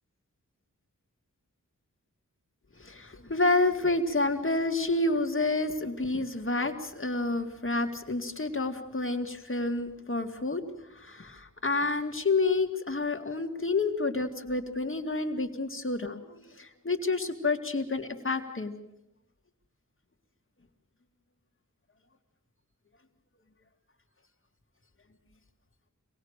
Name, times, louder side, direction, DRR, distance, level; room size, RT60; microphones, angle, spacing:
voice 1, 2.8-10.6 11.0-18.7, left 3 dB, 40° left, 4 dB, 2.3 m, -29 dB
25.5 x 19.5 x 6.6 m, 0.84 s
wide cardioid pair, 70°, 32 cm